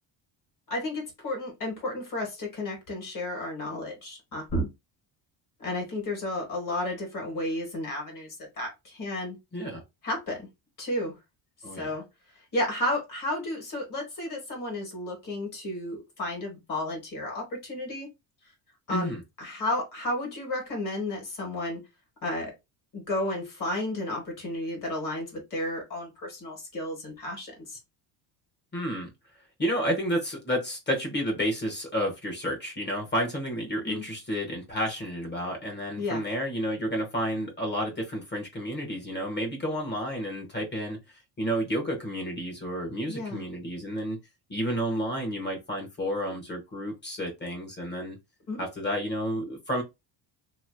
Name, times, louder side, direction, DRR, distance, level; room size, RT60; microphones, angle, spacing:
voice 1, 0.7-4.7 5.6-9.4 10.0-10.5 10.8-11.1 11.7-12.0 12.5-18.1 18.9-19.1 19.4-21.8 22.2-22.5 22.9-27.8 33.8-34.0 36.0-36.2 43.1-43.4 48.5-48.6, left 1 dB, 40° left, 1.7 m, -32 dB
voice 2, 11.6-11.9 18.9-19.2 28.7-29.1 29.6-41.0 41.4-44.2 44.5-48.2 48.6-49.8, equal, 20° left, 1.0 m, -31 dB
3.1 x 2.6 x 2.6 m
cardioid pair, 140°, 47 cm